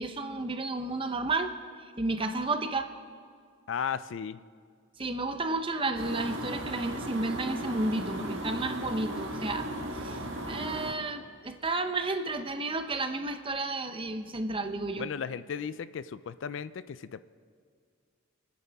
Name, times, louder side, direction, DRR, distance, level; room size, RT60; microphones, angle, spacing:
voice 1, 0.0-1.5 2.0-2.9 5.0-9.7 9.9-15.1, right 2 dB, 25° right, 7 dB, 0.8 m, -32 dB
voice 2, 3.7-4.4 15.0-17.2, left 7 dB, 65° left, 15 dB, 0.4 m, -35 dB
sound 1, 5.9-10.9, right 1 dB, 65° right, 1.5 m, -36 dB
26.0 x 9.7 x 3.5 m, 2.1 s
head